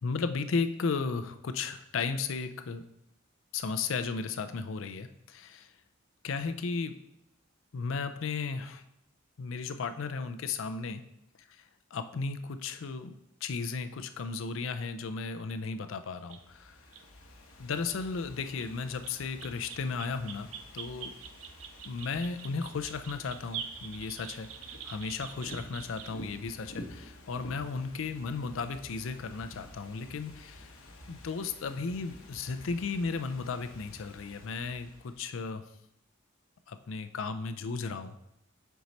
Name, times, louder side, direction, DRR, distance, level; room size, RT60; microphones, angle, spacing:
voice 1, 0.0-2.8 3.5-5.7 6.2-7.0 7.7-8.8 9.4-11.0 11.9-16.8 17.6-20.5 20.7-21.1 21.8-24.5 24.8-30.7 31.1-35.6 36.7-38.2, left 4 dB, 70° left, 9 dB, 0.4 m, -35 dB
Ocean / Fireworks, 16.1-35.4, left 1 dB, 85° left, 0.9 m, -51 dB
sound 1, 16.3-16.4 16.9-17.0 17.8-18.0 18.6-18.7 19.0-26.3 27.6-27.7 29.1-29.4, right 8 dB, 75° right, 0.5 m, -45 dB
4.6 x 4.1 x 5.1 m, 0.79 s
head